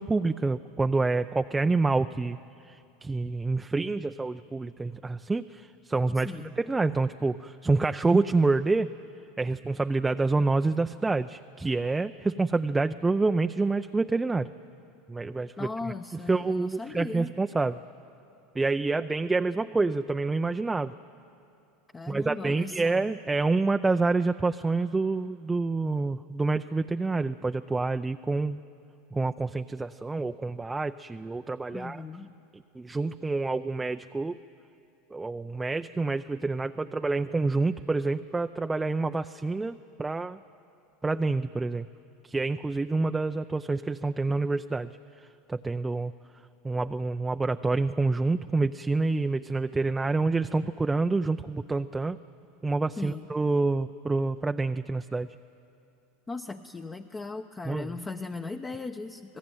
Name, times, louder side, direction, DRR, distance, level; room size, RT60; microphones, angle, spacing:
voice 1, 0.0-2.4 2.7-8.9 9.4-14.5 15.1-17.8 18.6-20.9 22.1-28.6 29.1-32.0 32.5-34.4 35.1-40.4 41.0-41.9 42.2-44.9 45.5-46.1 46.6-52.2 52.6-55.3 57.6-58.0, right 3 dB, 15° right, 8 dB, 0.5 m, -27 dB
voice 2, 6.2-6.5 15.6-17.3 21.9-23.1 31.7-32.3 53.0-53.2 56.3-59.4, left 3 dB, 20° left, 5 dB, 0.9 m, -38 dB
27.0 x 18.5 x 9.1 m, 2.6 s
hypercardioid pair, 95°, 0 cm